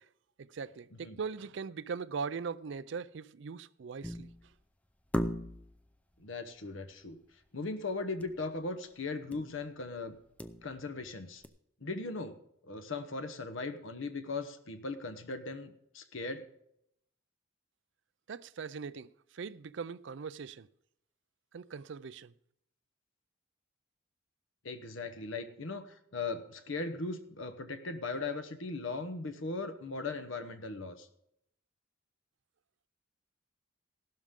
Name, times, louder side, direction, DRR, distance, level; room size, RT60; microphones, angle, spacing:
voice 1, 0.4-4.3 18.3-20.7 21.5-22.3, right 5 dB, 60° right, 0.4 m, -40 dB
sound 1, 4.0-4.5 5.1-5.8 8.2-8.4 8.7-8.8 9.3-9.6 10.1-11.0 11.4-11.5, equal, 5° left, 0.5 m, -37 dB
voice 2, 6.2-7.2 7.5-10.1 10.6-11.4 11.8-12.4 12.7-16.4 24.6-31.1, left 3 dB, 75° left, 1.0 m, -38 dB
15.5 x 12.0 x 3.7 m
head